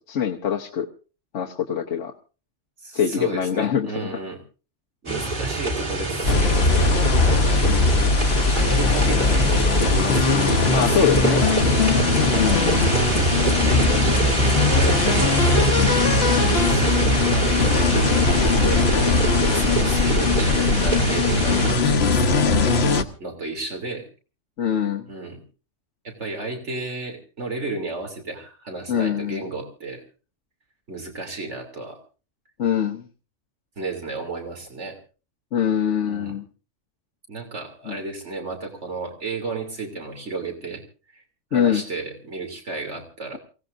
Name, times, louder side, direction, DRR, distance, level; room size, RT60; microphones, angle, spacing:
voice 1, 0.1-0.9 1.3-2.1 2.9-4.1 7.7-7.9 10.7-11.4 12.4-12.8 15.8-15.9 24.6-25.1 28.9-29.4 32.6-33.0 35.5-36.4 37.9-38.0 41.5-41.8, left 8 dB, 80° left, 1 dB, 1.4 m, -23 dB
voice 2, 2.8-4.4 5.0-7.6 8.4-11.6 12.3-12.7 13.3-15.7 16.3-22.9 23.2-24.1 25.1-25.4 26.0-30.0 30.9-32.0 33.8-35.0 36.1-36.3 37.3-40.8 41.1-41.2 41.5-43.4, right 3 dB, 75° right, 3 dB, 3.4 m, -33 dB
sound 1, 5.1-21.7, right 1 dB, 45° right, 3.1 m, -24 dB
sound 2, 6.2-23.0, left 3 dB, 60° left, 1.3 m, -20 dB
28.0 x 17.0 x 2.6 m, 0.34 s
omnidirectional pair, 1.2 m